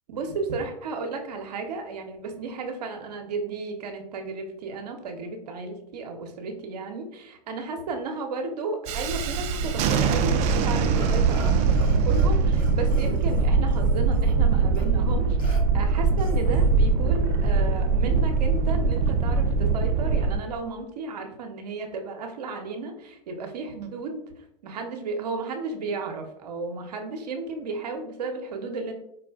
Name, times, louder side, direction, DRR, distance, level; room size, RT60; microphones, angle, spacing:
voice 1, 0.1-28.9, right 3 dB, 75° right, 4 dB, 0.7 m, -34 dB
Thunderstorm, 8.9-20.4, right 4 dB, 35° right, 0.4 m, -22 dB
Burping eructation, 11.0-12.3 12.5-14.4 14.7-14.9 15.4-15.6 16.2-16.7, right 1 dB, 20° left, 1.1 m, -43 dB
4.6 x 2.4 x 2.3 m, 0.74 s
hypercardioid pair, 105°, 21 cm